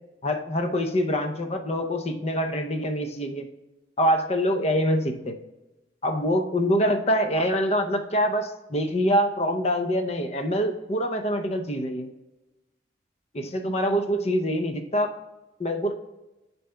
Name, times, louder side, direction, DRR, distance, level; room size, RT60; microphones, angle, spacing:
voice 1, 0.2-3.4 4.0-5.4 6.0-12.1 13.3-15.1 15.6-15.9, equal, 35° left, 5 dB, 0.6 m, -25 dB
11.0 x 4.2 x 2.2 m, 1.0 s
head